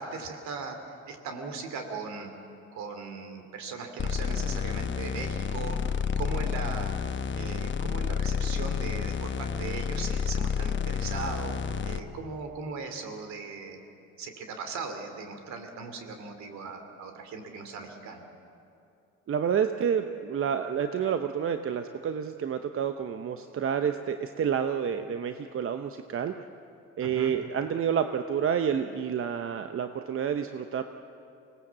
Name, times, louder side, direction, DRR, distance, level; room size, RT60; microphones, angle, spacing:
voice 1, 0.0-2.3 2.7-7.0 7.3-13.8 14.2-18.2 27.0-27.3, right 4 dB, 70° right, 6 dB, 2.8 m, -39 dB
sound 1, 4.0-12.0, left 6 dB, 40° left, 1.1 m, -30 dB
voice 2, 19.3-26.3 27.0-30.8, right 8 dB, 45° right, 8 dB, 0.9 m, -29 dB
25.0 x 18.5 x 7.4 m, 2.6 s
supercardioid pair, 70°, 29 cm